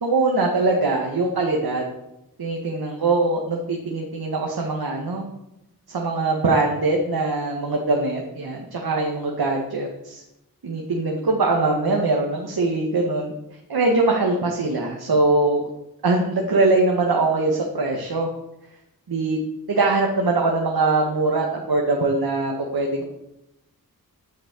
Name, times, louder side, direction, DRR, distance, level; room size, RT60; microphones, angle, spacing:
voice 1, 0.0-1.8 2.4-5.3 5.9-10.2 10.6-13.3 13.7-15.6 16.0-18.3 19.1-19.4 19.7-23.0, right 3 dB, 80° right, 0 dB, 1.9 m, -22 dB
9.7 x 8.6 x 8.3 m, 0.90 s
wide cardioid pair, 70°, 37 cm